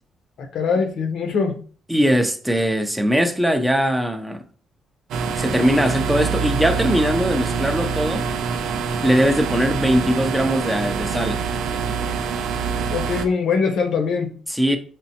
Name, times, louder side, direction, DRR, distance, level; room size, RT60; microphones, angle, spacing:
voice 1, 0.5-1.5 12.9-14.3, left 5 dB, 75° left, 0.7 m, -22 dB
voice 2, 1.9-4.4 5.4-8.3 9.0-11.4 14.5-14.8, equal, 5° right, 0.5 m, -20 dB
sound 1, 5.1-13.3, right 5 dB, 80° right, 0.4 m, -25 dB
5.2 x 2.0 x 2.8 m
cardioid pair, 90°, 0 cm